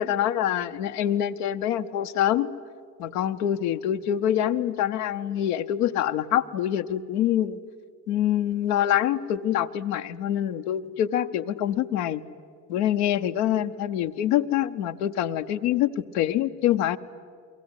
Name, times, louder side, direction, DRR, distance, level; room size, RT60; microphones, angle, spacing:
voice 1, 0.0-2.5 3.0-7.6 8.1-12.2 12.7-17.0, left 11 dB, 80° left, 6 dB, 0.9 m, -25 dB
29.5 x 23.0 x 8.1 m, 2.1 s
hypercardioid pair, 50°, 45 cm